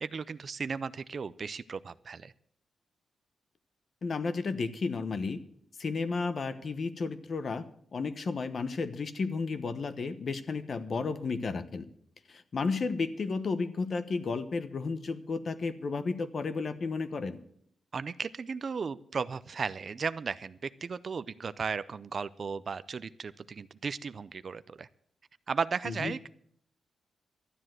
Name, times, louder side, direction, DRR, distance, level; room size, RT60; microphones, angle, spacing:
voice 1, 0.0-2.3 17.9-24.9 25.5-26.3, right 5 dB, 40° right, 16 dB, 0.4 m, -35 dB
voice 2, 4.0-5.4 5.8-7.6 7.9-11.9 12.3-17.4 25.8-26.1, left 4 dB, 40° left, 12 dB, 1.0 m, -33 dB
13.0 x 10.0 x 7.6 m, 0.65 s
wide cardioid pair, 160°, 0 cm